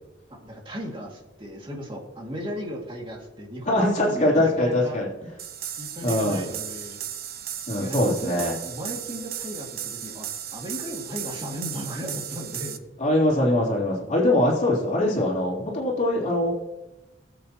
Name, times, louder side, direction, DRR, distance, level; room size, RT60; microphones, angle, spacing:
voice 1, 0.3-5.0 5.8-7.0 7.8-12.8, equal, 30° right, -1 dB, 2.3 m, -36 dB
voice 2, 3.6-5.1 6.0-6.4 7.7-8.5 13.0-16.5, left 1 dB, 40° left, -4 dB, 3.3 m, -22 dB
sound 1, 5.4-12.8, right 10 dB, 55° right, 0.7 m, -35 dB
19.0 x 8.0 x 3.0 m, 1.0 s
head